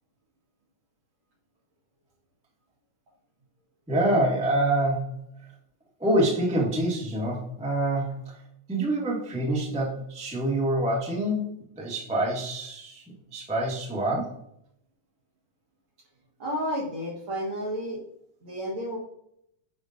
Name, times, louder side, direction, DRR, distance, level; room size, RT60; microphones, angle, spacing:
voice 1, 3.9-5.1 6.0-8.2 8.7-11.4 11.7-13.0 13.3-14.4, right 1 dB, 5° right, -4 dB, 0.8 m, -26 dB
voice 2, 16.4-18.0 18.4-19.0, equal, 50° right, -2 dB, 1.8 m, -31 dB
8.6 x 5.4 x 2.6 m, 0.73 s
omnidirectional pair, 3.4 m